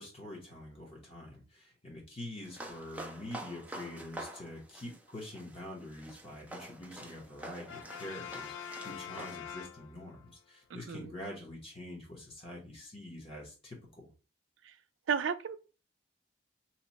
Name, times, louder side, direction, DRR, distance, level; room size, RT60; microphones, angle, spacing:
voice 1, 0.0-14.1, left 1 dB, 30° left, 0.9 m, -46 dB
sound 1, 2.4-9.4, right 1 dB, 10° right, 0.4 m, -47 dB
Brass instrument, 7.7-10.3, left 8 dB, 90° left, 0.3 m, -44 dB
voice 2, 15.1-15.6, right 7 dB, 90° right, 0.4 m, -32 dB
2.9 x 2.2 x 3.9 m
head